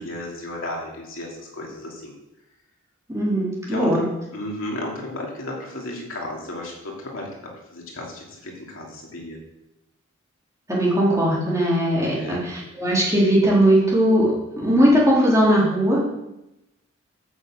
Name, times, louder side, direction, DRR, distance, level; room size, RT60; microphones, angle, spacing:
voice 1, 0.0-2.1 3.7-7.3 7.7-9.4 12.0-12.4, left 1 dB, 70° left, -2 dB, 2.8 m, -34 dB
voice 2, 3.1-4.0 10.7-14.3 14.6-16.0, equal, 15° right, -6 dB, 3.6 m, -19 dB
9.2 x 6.8 x 7.6 m, 0.92 s
head